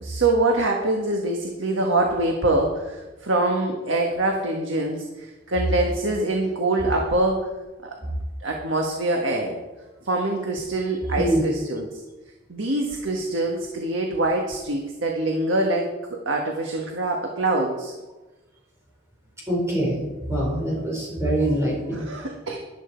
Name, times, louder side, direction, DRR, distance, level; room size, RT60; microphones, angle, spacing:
voice 1, 0.0-7.4 8.4-9.6 10.0-11.9 12.5-17.9 21.9-22.6, right 2 dB, 80° right, 1 dB, 1.5 m, -24 dB
voice 2, 19.5-20.0 20.3-22.0, right 1 dB, 15° right, -4 dB, 4.8 m, -24 dB
12.0 x 12.0 x 4.6 m, 1.1 s
head